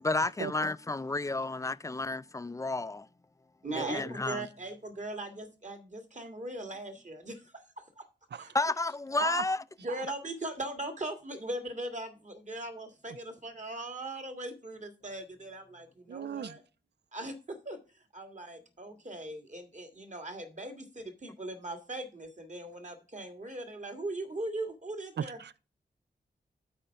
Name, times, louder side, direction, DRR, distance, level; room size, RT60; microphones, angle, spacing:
voice 1, 0.0-3.1 3.7-4.5 8.5-9.6, left 2 dB, 15° left, 0.4 m, -31 dB
voice 2, 3.6-8.1 8.4-8.5 9.8-16.6 17.1-25.6, right 2 dB, 40° right, 1.7 m, -40 dB
voice 3, 16.1-16.5 25.2-25.3, right 8 dB, 70° right, 0.4 m, -35 dB
9.0 x 4.3 x 5.6 m
cardioid pair, 50°, 19 cm